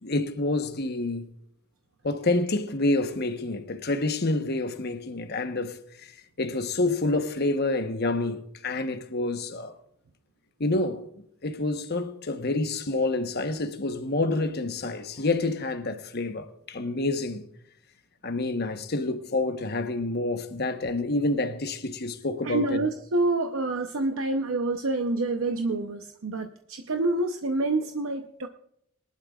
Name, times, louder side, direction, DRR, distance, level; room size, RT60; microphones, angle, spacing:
voice 1, 0.0-1.2 2.0-9.8 10.6-11.1 11.4-17.4 18.2-22.9, left 2 dB, 50° left, 1.0 m, -28 dB
voice 2, 22.4-28.5, right 2 dB, 75° right, 0.7 m, -27 dB
22.0 x 11.5 x 2.4 m
head